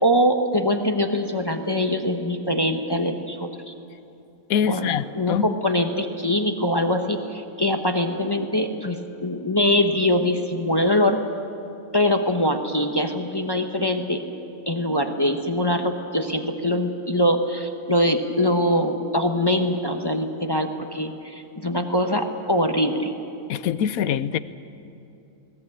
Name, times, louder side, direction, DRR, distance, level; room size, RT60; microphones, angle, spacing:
voice 1, 0.0-3.7 4.7-11.2 11.9-14.2 14.7-23.1, left 1 dB, 20° left, 5 dB, 1.0 m, -23 dB
voice 2, 4.5-5.5 23.5-24.4, left 8 dB, 85° left, 15 dB, 1.1 m, -24 dB
21.5 x 18.0 x 8.8 m, 2.7 s
omnidirectional pair, 1.5 m